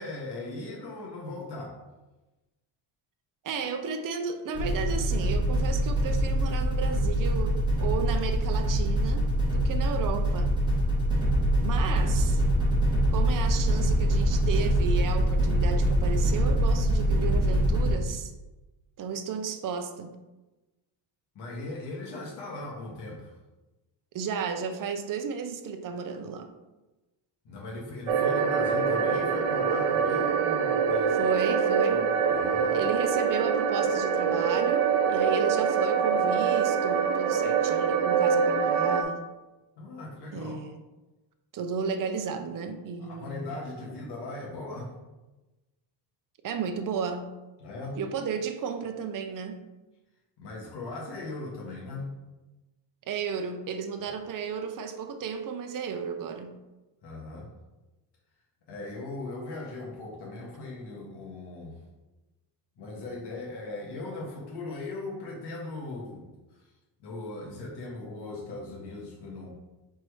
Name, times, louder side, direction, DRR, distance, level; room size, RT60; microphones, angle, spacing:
voice 1, 0.0-1.8 21.3-23.3 27.4-31.3 32.3-32.9 39.8-40.6 43.0-45.0 47.6-48.0 50.4-52.1 57.0-57.5 58.7-61.8 62.8-66.7 67.0-69.5, left 2 dB, 60° left, -3 dB, 1.6 m, -39 dB
voice 2, 3.4-10.5 11.6-12.4 13.1-18.3 19.0-20.2 24.1-26.5 31.2-32.1 32.7-39.2 40.3-40.8 41.5-43.6 46.4-47.3 48.0-49.6 53.1-56.6, right 6 dB, 45° right, 6 dB, 0.7 m, -33 dB
sound 1, 4.5-17.9, equal, 10° right, 1.9 m, -24 dB
sound 2, 28.1-39.0, right 6 dB, 90° right, 0.8 m, -25 dB
4.8 x 4.4 x 4.7 m, 1.1 s
cardioid pair, 125°, 46 cm